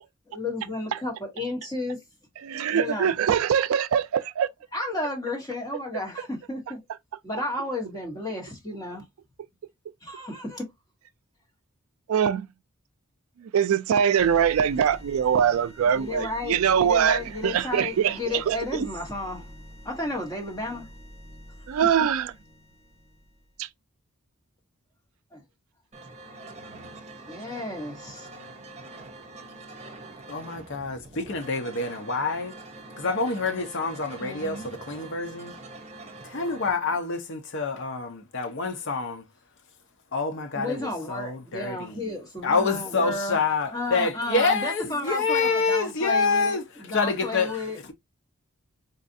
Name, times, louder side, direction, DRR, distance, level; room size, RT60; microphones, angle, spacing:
voice 1, 0.3-2.0 2.7-3.1 4.7-6.8 7.2-9.0 10.0-10.6 15.9-19.5 19.8-20.9 25.3-25.4 27.3-28.3 34.2-34.7 40.5-43.4 43.7-47.8, left 2 dB, 15° left, 1.2 m, -33 dB
voice 2, 2.4-4.5 12.1-12.5 13.4-18.9 21.7-22.3 23.6-23.7, right 8 dB, 70° right, 0.3 m, -23 dB
sound 1, 14.2-23.6, equal, 35° left, 1.3 m, -46 dB
sound 2, 25.9-36.7, right 2 dB, 30° right, 0.6 m, -44 dB
voice 3, 30.3-32.6 33.0-35.5 36.2-39.3 40.1-42.2 42.4-46.6 46.9-47.6, left 4 dB, 60° left, 0.7 m, -27 dB
4.0 x 2.4 x 2.6 m
head